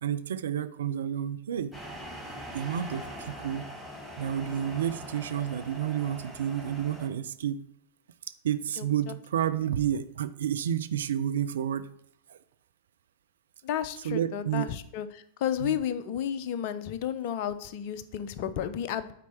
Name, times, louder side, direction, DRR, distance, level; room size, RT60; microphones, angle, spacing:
voice 1, 0.0-1.7 2.5-3.7 4.2-7.6 8.4-11.9 12.3-12.4 14.0-14.7 15.6-15.7, right 10 dB, 65° right, 11 dB, 0.5 m, -30 dB
sound 1, 1.7-7.1, equal, 5° left, 1.6 m, -42 dB
voice 2, 8.8-9.2 13.6-19.1, left 9 dB, 45° left, 14 dB, 0.6 m, -32 dB
8.9 x 4.4 x 4.4 m, 0.76 s
figure-of-eight pair, 90°, 0 cm